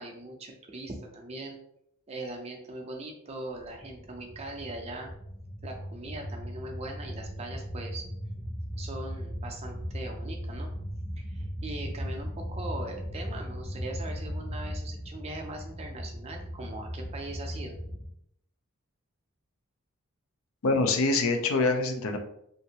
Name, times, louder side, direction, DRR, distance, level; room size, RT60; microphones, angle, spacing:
voice 1, 0.0-1.6 2.1-5.1 5.6-8.0 8.8-10.7 11.2-17.8, right 2 dB, 30° right, 2 dB, 0.4 m, -40 dB
sound 1, 3.6-18.1, equal, 50° left, 0.9 m, -38 dB
voice 2, 20.6-22.2, left 3 dB, 70° left, 5 dB, 0.4 m, -25 dB
2.8 x 2.5 x 2.8 m, 0.74 s
head